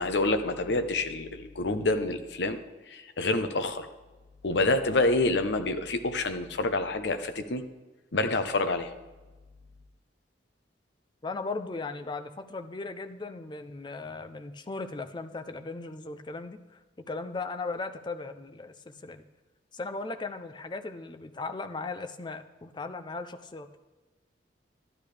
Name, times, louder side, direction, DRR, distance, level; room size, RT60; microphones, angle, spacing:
voice 1, 0.0-2.6 2.9-3.9 4.4-7.6 8.1-8.9, left 2 dB, 65° left, 8 dB, 0.7 m, -27 dB
voice 2, 11.2-16.8 17.1-19.2 19.7-23.9, left 3 dB, 25° left, 8 dB, 0.5 m, -37 dB
12.0 x 10.5 x 3.3 m, 1.2 s
head